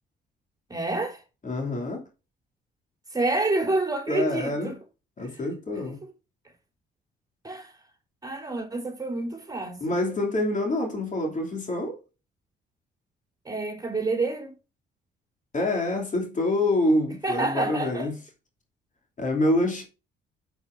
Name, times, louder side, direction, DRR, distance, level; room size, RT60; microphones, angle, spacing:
voice 1, 0.7-1.2 3.1-4.7 5.2-5.3 5.9-6.1 7.4-7.7 8.2-10.0 13.5-14.5 17.2-18.1, right 2 dB, 20° right, 4.0 m, -28 dB
voice 2, 1.4-2.0 4.1-4.8 5.2-6.0 9.8-12.0 15.5-18.2 19.2-19.8, left 1 dB, 40° left, 2.8 m, -26 dB
8.9 x 8.0 x 2.6 m
supercardioid pair, 65°, 20 cm